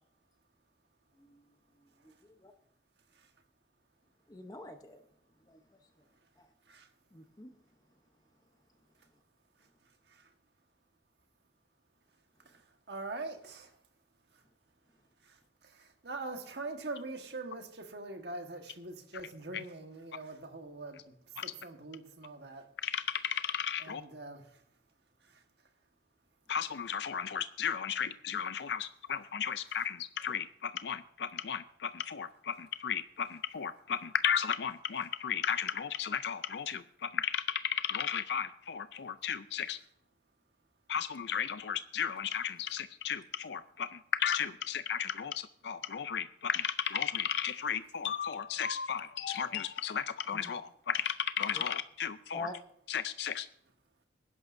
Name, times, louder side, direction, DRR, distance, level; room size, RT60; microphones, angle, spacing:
voice 1, 4.3-5.0 5.5-5.6 6.4-6.5 7.1-7.5 50.3-50.4 51.5-51.6 52.3-52.5, left 2 dB, 20° left, 0.8 m, -44 dB
voice 2, 12.9-13.7 15.2-21.1 21.4-22.7 23.8-24.6 25.2-25.4, right 3 dB, 75° right, 1.4 m, -43 dB
voice 3, 22.8-24.0 26.5-39.8 40.9-52.5 52.9-53.5, left 8 dB, 75° left, 0.4 m, -34 dB
20.5 x 11.0 x 2.6 m
head